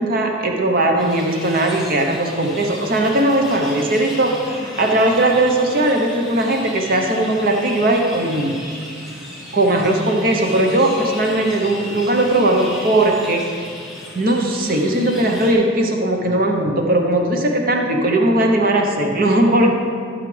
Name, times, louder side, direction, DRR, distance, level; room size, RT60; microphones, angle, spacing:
voice 1, 0.0-4.3 4.8-8.6 9.5-13.7 14.1-19.7, right 1 dB, 50° right, 2 dB, 0.9 m, -18 dB
sound 1, 1.0-15.5, left 1 dB, ahead, 1.8 m, -35 dB
13.0 x 6.5 x 3.3 m, 2.3 s
head